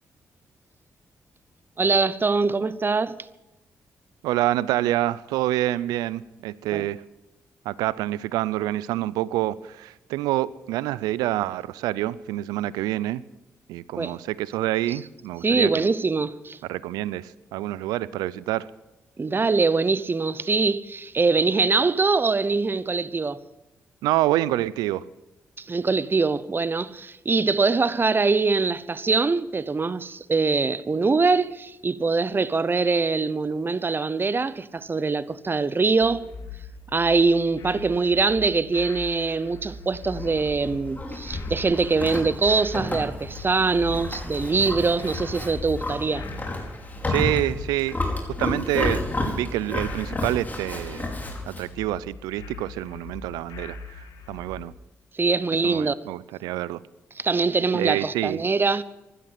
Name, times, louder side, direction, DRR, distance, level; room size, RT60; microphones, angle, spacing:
voice 1, 1.8-3.2 6.7-6.9 14.0-14.2 15.4-16.6 19.2-23.4 25.6-36.3 36.9-46.3 55.1-56.0 57.2-58.8, right 4 dB, 35° right, 0.8 m, -23 dB
voice 2, 4.2-7.0 7.7-13.2 13.7-15.9 16.7-18.7 24.0-25.0 47.1-48.0 48.3-51.1 51.5-53.8 54.3-54.7 55.6-56.8 57.7-58.4, right 15 dB, 85° right, 0.4 m, -27 dB
sound 1, 36.0-54.7, left 4 dB, 75° left, 1.8 m, -42 dB
Livestock farm animals working animals, 40.0-51.7, left 2 dB, 25° left, 5.0 m, -31 dB
16.0 x 12.0 x 5.9 m
supercardioid pair, 45°, 6 cm